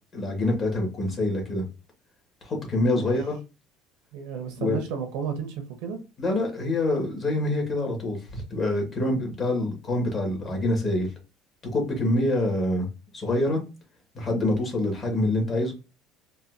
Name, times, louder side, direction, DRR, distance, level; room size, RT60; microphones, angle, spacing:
voice 1, 0.1-1.6 2.4-3.4 4.6-4.8 6.2-11.1 11.7-12.9 13.1-13.6 14.1-15.7, left 1 dB, 30° left, 1 dB, 1.6 m, -26 dB
voice 2, 4.1-6.0, right 6 dB, 75° right, 6 dB, 1.1 m, -33 dB
4.1 x 2.6 x 2.5 m, 0.29 s
cardioid pair, 140°, 0 cm